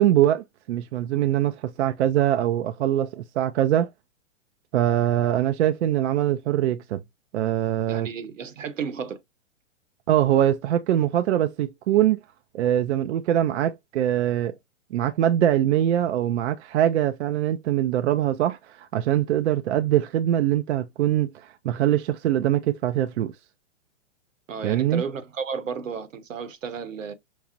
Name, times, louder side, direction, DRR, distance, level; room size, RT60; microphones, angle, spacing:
voice 1, 0.0-3.9 4.7-7.0 7.3-8.1 10.1-12.2 12.5-14.6 14.9-23.3 24.6-25.0, right 11 dB, 65° right, 0.5 m, -23 dB
voice 2, 7.9-9.2 24.5-27.1, right 6 dB, 85° right, 1.0 m, -33 dB
5.9 x 2.0 x 2.5 m
hypercardioid pair, 135°, 38 cm